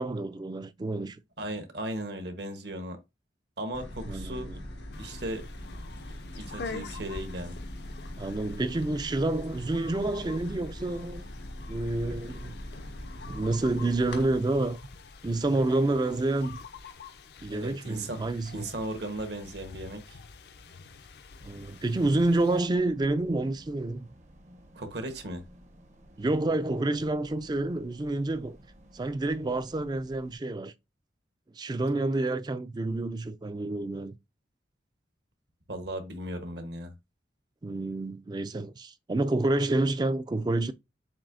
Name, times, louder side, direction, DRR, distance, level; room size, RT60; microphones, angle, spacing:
voice 1, 0.0-1.2 4.1-4.6 8.2-11.2 11.7-12.5 13.3-14.8 15.2-16.6 17.4-18.6 21.4-24.1 26.2-28.6 28.9-30.7 31.6-34.1 37.6-40.7, right 2 dB, 20° right, 0.3 m, -28 dB
voice 2, 1.4-3.0 3.6-4.5 5.0-5.4 6.4-7.6 17.5-18.2 18.5-20.2 24.7-25.4 35.7-36.9, right 1 dB, 65° right, 1.1 m, -36 dB
sound 1, 3.7-14.2, left 1 dB, 80° left, 1.4 m, -41 dB
sound 2, 4.9-22.6, left 4 dB, 60° left, 0.5 m, -47 dB
sound 3, 21.4-30.4, equal, 40° right, 0.7 m, -54 dB
7.2 x 2.6 x 2.5 m
head